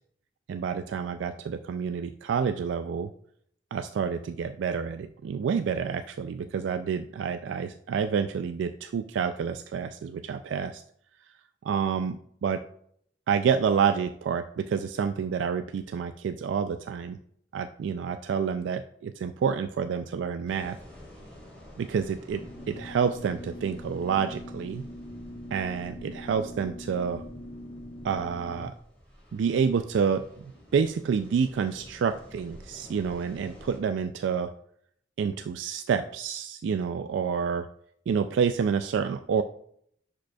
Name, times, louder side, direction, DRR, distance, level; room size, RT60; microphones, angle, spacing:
voice 1, 0.5-3.1 3.7-10.8 11.6-12.6 13.3-17.2 17.5-20.8 21.8-24.9 25.5-27.2 28.0-28.7 29.3-34.5 35.2-37.7 38.1-39.4, right 6 dB, 80° right, 9 dB, 0.3 m, -28 dB
sound 1, 20.5-33.8, equal, 5° left, 2.9 m, -51 dB
sound 2, 22.3-28.7, left 1 dB, 30° left, 2.4 m, -42 dB
10.5 x 5.1 x 2.3 m, 0.68 s
head